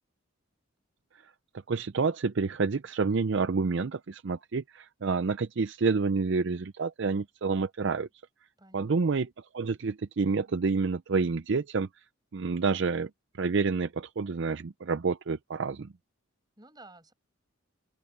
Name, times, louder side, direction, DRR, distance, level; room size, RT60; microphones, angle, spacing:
voice 1, 1.7-8.1 8.7-9.3 9.5-11.9 12.3-13.1 13.4-15.9, right 4 dB, 55° right, 0.5 m, -28 dB
voice 2, 8.6-9.1 16.6-17.1, right 2 dB, 20° right, 7.4 m, -53 dB
open air
head